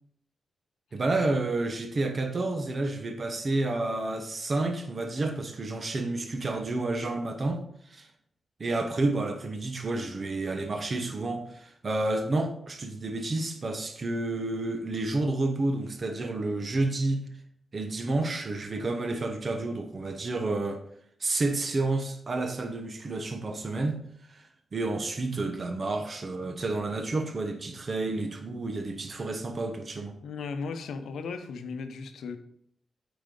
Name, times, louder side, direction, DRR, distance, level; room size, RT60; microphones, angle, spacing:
voice 1, 0.9-8.1 8.6-17.2 17.7-20.8 21.2-24.0 24.3-30.2, right 2 dB, 45° right, 6 dB, 1.0 m, -30 dB
voice 2, 30.2-32.4, left 4 dB, 90° left, 8 dB, 0.8 m, -36 dB
8.7 x 5.1 x 3.8 m, 0.68 s
cardioid pair, 85°, 0 cm